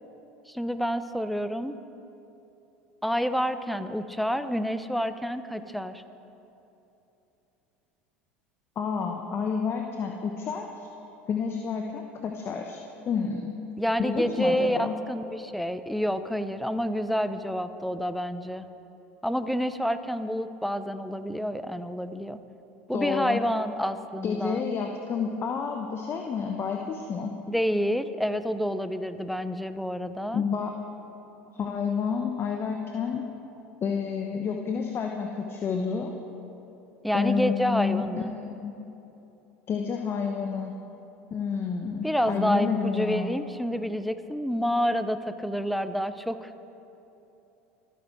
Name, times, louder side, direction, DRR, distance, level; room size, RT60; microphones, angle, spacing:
voice 1, 0.5-1.8 3.0-6.0 13.8-18.7 19.2-22.4 22.9-24.6 27.5-30.4 37.0-38.3 42.0-46.5, equal, ahead, 11 dB, 0.8 m, -28 dB
voice 2, 8.8-10.9 11.3-12.8 13.1-13.5 14.0-14.9 22.9-23.4 24.2-27.4 30.3-30.7 31.5-33.3 33.8-36.1 37.1-38.2 38.6-38.8 39.7-40.8 41.3-43.3, left 6 dB, 35° left, 3 dB, 1.1 m, -29 dB
25.5 x 9.4 x 4.6 m, 3.0 s
hypercardioid pair, 80°, 7 cm